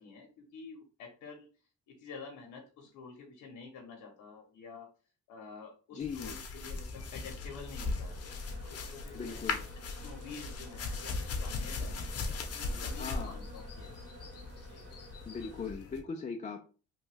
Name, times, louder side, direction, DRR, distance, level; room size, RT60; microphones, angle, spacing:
voice 1, 0.0-1.5 1.9-4.9 5.3-8.2 8.6-12.1 12.5-13.9 14.7-14.9, left 4 dB, 85° left, 1 dB, 0.8 m, -49 dB
voice 2, 5.9-6.3 9.1-9.6 13.0-13.3 15.3-16.6, left 5 dB, 25° left, 4 dB, 0.3 m, -39 dB
sound 1, 6.0-16.0, left 3 dB, 55° left, 0.7 m, -39 dB
sound 2, 7.4-15.7, equal, 55° right, 1.5 m, -53 dB
3.0 x 2.3 x 3.2 m, 0.37 s
cardioid pair, 90°, 30 cm